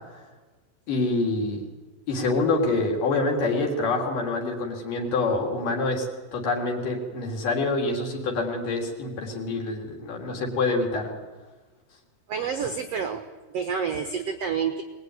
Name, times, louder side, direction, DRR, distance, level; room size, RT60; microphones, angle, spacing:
voice 1, 0.9-1.6 2.1-6.1 6.3-11.1, left 3 dB, 55° left, 1 dB, 4.5 m, -26 dB
voice 2, 12.3-13.2 13.5-14.8, right 6 dB, 80° right, 7 dB, 1.4 m, -28 dB
24.0 x 20.5 x 9.6 m, 1.3 s
omnidirectional pair, 4.8 m